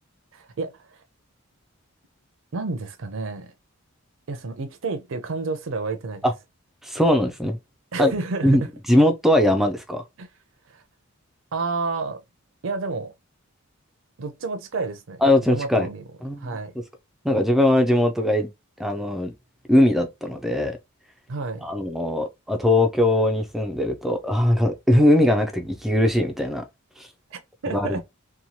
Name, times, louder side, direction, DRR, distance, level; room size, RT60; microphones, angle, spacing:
voice 1, 0.3-1.0 2.5-3.5 4.3-6.2 7.9-8.7 10.2-10.3 10.7-10.8 11.5-12.2 12.6-13.1 14.2-16.0 16.4-16.7 21.3-21.7 27.3-28.0, right 3 dB, 60° right, 0.5 m, -30 dB
voice 2, 6.8-7.6 8.0-8.1 8.4-8.6 8.9-10.0 15.2-15.9 16.2-16.5 17.2-18.5 18.8-19.3 19.7-20.8 21.6-26.6 27.0-27.1 27.7-28.0, left 1 dB, ahead, 0.3 m, -20 dB
2.8 x 2.2 x 2.6 m
head